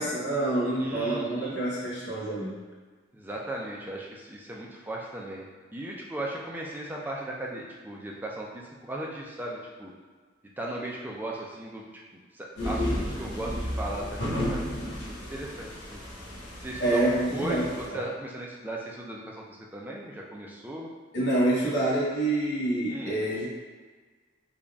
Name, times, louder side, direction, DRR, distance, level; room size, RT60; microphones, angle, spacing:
voice 1, 0.0-2.6 16.8-18.0 21.1-23.5, right 1 dB, 65° left, -6 dB, 1.1 m, -27 dB
voice 2, 0.8-1.6 3.1-5.4 5.7-9.9 10.6-11.8 12.3-16.0 16.6-17.0 17.3-20.9 22.9-23.2, right 1 dB, 10° right, -3 dB, 0.4 m, -37 dB
sound 1, 12.6-17.9, equal, 90° left, 1.2 m, -33 dB
3.9 x 2.3 x 3.4 m, 1.4 s
head